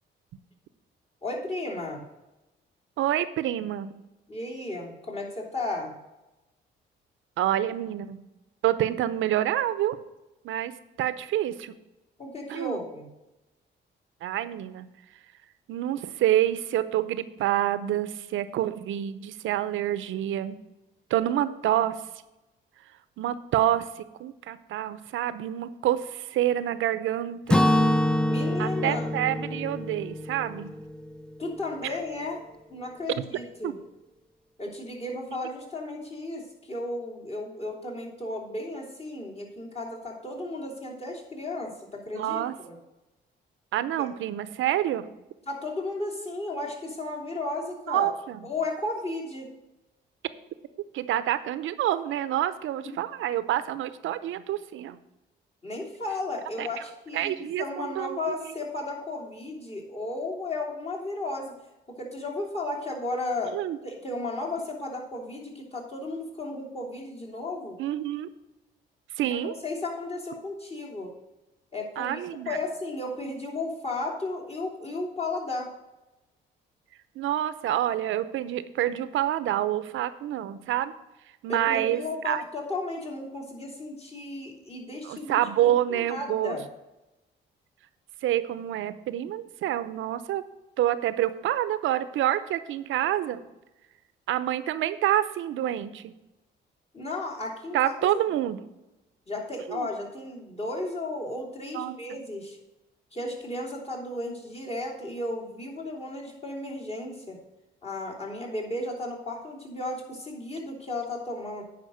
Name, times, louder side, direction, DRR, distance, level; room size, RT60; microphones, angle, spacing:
voice 1, 1.2-2.0 4.3-5.9 12.2-13.1 28.3-29.1 31.4-32.4 32.7-33.8 34.6-42.7 44.0-44.1 45.5-48.1 48.4-49.5 55.6-61.5 62.0-63.6 63.8-67.8 69.2-71.1 71.7-75.7 81.5-86.6 96.9-98.2 99.3-102.6 103.1-107.4 107.8-111.6, left 2 dB, 30° left, -2 dB, 3.0 m, -34 dB
voice 2, 3.0-3.9 7.4-8.2 8.6-10.0 10.4-10.7 11.0-11.7 12.5-12.8 14.2-14.9 15.7-20.6 21.1-22.0 23.2-27.7 28.6-30.7 31.8-31.9 33.6-33.7 42.1-42.5 43.7-45.1 47.9-48.4 50.9-55.0 56.6-56.7 57.1-58.5 63.5-63.8 67.8-68.3 69.2-69.5 72.0-72.6 77.2-80.9 81.4-82.4 85.0-86.6 88.2-90.4 90.8-93.4 94.3-96.1 97.7-98.6 99.7-99.9 101.7-102.2, right 12 dB, 80° right, 14 dB, 0.7 m, -27 dB
Acoustic guitar / Strum, 27.5-31.5, left 1 dB, 5° left, 0.5 m, -25 dB
9.4 x 5.2 x 6.3 m, 0.99 s
cardioid pair, 90°, 20 cm